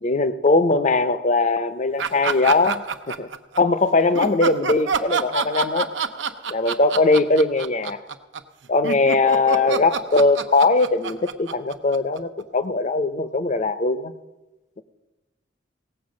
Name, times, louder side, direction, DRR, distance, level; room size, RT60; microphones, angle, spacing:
voice 1, 0.0-3.3 3.6-5.9 6.5-8.0 8.7-14.1, left 3 dB, 40° left, 12 dB, 0.7 m, -20 dB
sound 1, 2.0-3.6 4.1-12.4, right 5 dB, 85° right, 0.7 m, -27 dB
17.5 x 7.8 x 6.3 m, 1.1 s
head